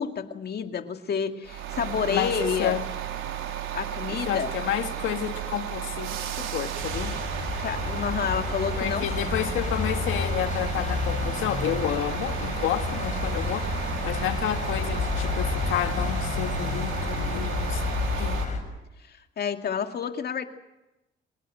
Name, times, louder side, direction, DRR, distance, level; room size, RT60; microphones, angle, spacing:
voice 1, 0.0-2.8 3.7-4.5 7.6-9.1 19.0-20.5, left 7 dB, 55° left, 2.3 m, -29 dB
sound 1, 1.4-18.5, right 10 dB, 85° right, 4.2 m, -33 dB
voice 2, 2.1-2.8 4.1-7.2 8.8-13.7 14.0-18.4, left 11 dB, 85° left, 1.7 m, -30 dB
sound 2, 6.8-18.6, left 4 dB, 40° left, 7.3 m, -30 dB
27.0 x 18.5 x 7.8 m
cardioid pair, 90°, 20 cm